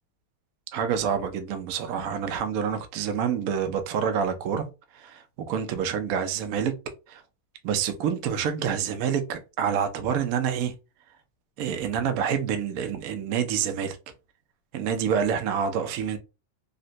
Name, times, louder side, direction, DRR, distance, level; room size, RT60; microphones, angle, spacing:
voice 1, 0.7-4.7 4.9-6.8 7.1-7.2 7.6-10.7 11.6-14.0 14.7-16.2, right 7 dB, 85° right, 0.7 m, -27 dB
3.9 x 2.1 x 2.5 m
omnidirectional pair, 2.3 m